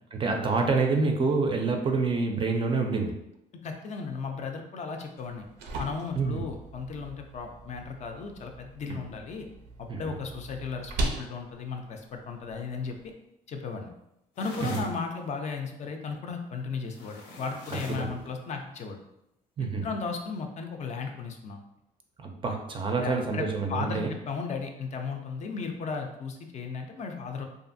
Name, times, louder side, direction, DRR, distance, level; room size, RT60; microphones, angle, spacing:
voice 1, 0.1-3.2 6.2-6.4 9.9-10.1 14.6-14.8 18.0-18.1 19.6-19.9 22.2-24.1, right 4 dB, 30° right, 3 dB, 0.4 m, -27 dB
voice 2, 3.6-5.5 5.8-9.5 9.8-13.0 13.5-13.9 14.4-19.0 19.6-21.6 23.0-27.5, left 5 dB, 45° left, 4 dB, 0.4 m, -35 dB
sound 1, 5.2-13.1, right 2 dB, 85° right, 0.5 m, -39 dB
sound 2, 14.4-15.0 16.9-18.1, left 2 dB, 85° left, 0.6 m, -42 dB
2.6 x 2.4 x 2.5 m, 0.83 s
cardioid pair, 110°, 17 cm